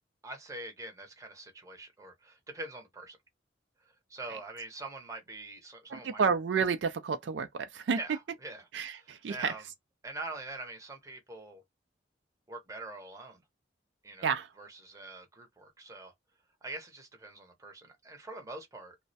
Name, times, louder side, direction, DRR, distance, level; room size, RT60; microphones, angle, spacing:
voice 1, 0.2-3.2 3.8-6.2 8.0-9.6 10.0-11.6 12.5-13.4 14.0-16.1 16.6-19.0, right 2 dB, 15° right, 0.7 m, -44 dB
voice 2, 5.9-8.0 8.7-9.5 14.2-14.5, right 5 dB, 75° right, 0.4 m, -30 dB
2.2 x 2.1 x 2.6 m
head